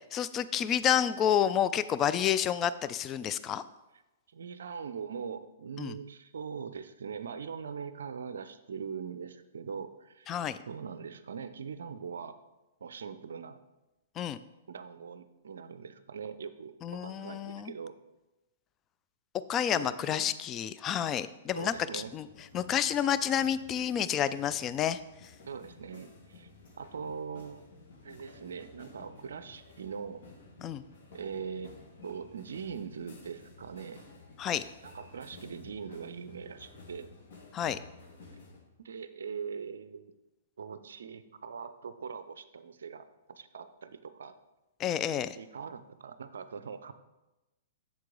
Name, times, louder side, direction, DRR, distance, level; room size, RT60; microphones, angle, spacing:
voice 1, 0.1-3.6 5.8-5.9 10.3-10.6 14.2-14.4 16.8-17.7 19.5-22.3 22.5-25.0 30.6-30.8 34.4-34.6 37.5-37.8 44.8-45.4, left 9 dB, 25° left, 13 dB, 0.3 m, -29 dB
voice 2, 4.3-10.3 10.7-12.4 12.8-13.6 14.7-17.9 19.7-20.3 21.6-22.1 25.5-26.5 26.8-27.6 28.0-30.2 31.1-31.8 32.0-34.0 34.8-37.1 38.8-40.1 40.6-44.3 45.4-46.9, right 6 dB, 60° right, 12 dB, 0.5 m, -41 dB
sound 1, 21.5-38.6, left 3 dB, 50° left, 1.8 m, -54 dB
7.4 x 7.3 x 3.8 m, 1.0 s
figure-of-eight pair, 110°, 0 cm